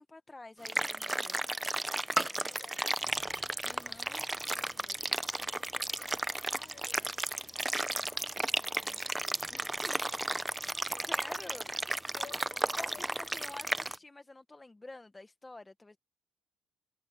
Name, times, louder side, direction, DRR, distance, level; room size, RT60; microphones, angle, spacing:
voice 1, 0.0-1.4 3.6-4.2 9.5-10.0 11.1-11.7 12.8-16.0, left 2 dB, 20° left, 1.2 m, -49 dB
sound 1, 0.7-14.0, right 1 dB, 10° right, 0.6 m, -34 dB
voice 2, 2.3-3.5 3.8-10.0 10.9-11.7 12.1-14.0, left 8 dB, 60° left, 7.1 m, -59 dB
cardioid pair, 90°, 0 cm